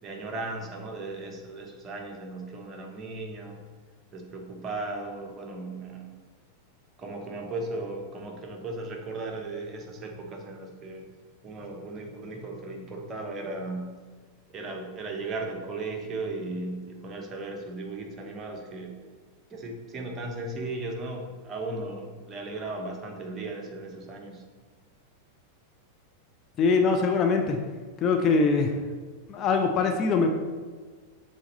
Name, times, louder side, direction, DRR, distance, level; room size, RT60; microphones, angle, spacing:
voice 1, 0.0-3.6 4.1-6.1 7.0-11.1 11.4-13.9 14.5-18.9 19.5-24.4, right 2 dB, 25° right, 1 dB, 1.1 m, -36 dB
voice 2, 26.6-27.6 28.0-28.8 29.3-30.3, left 4 dB, 30° left, 4 dB, 0.6 m, -23 dB
7.0 x 4.1 x 4.1 m, 1.5 s
figure-of-eight pair, 90°, 0 cm